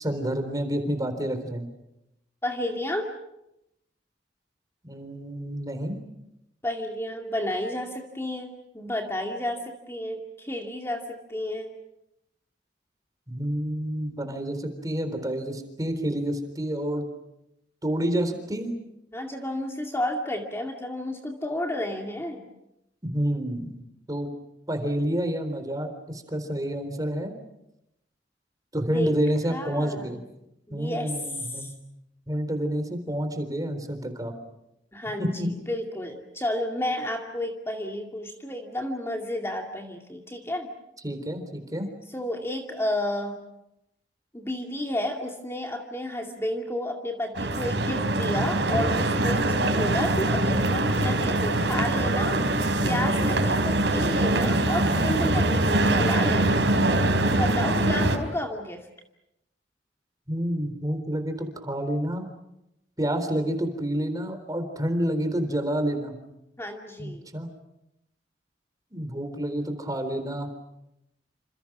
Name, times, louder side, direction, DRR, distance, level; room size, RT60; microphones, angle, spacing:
voice 1, 0.0-1.7 4.8-6.0 13.3-17.0 17.8-18.7 23.0-23.8 24.1-24.3 24.7-27.3 28.7-30.2 30.7-31.7 32.3-34.3 35.2-35.5 41.0-41.9 60.3-62.3 63.0-66.2 67.0-67.6 68.9-70.5, right 1 dB, 20° right, 7 dB, 3.9 m, -29 dB
voice 2, 2.4-3.1 6.6-11.7 19.1-22.5 28.9-29.1 29.5-30.1 30.7-31.7 34.9-40.7 42.1-43.4 44.3-52.4 52.8-56.6 57.2-58.9 66.6-67.2, left 1 dB, 15° left, 2 dB, 2.3 m, -31 dB
sound 1, 47.3-58.2, right 1 dB, 75° right, 4.2 m, -23 dB
28.5 x 27.5 x 6.2 m, 0.85 s
head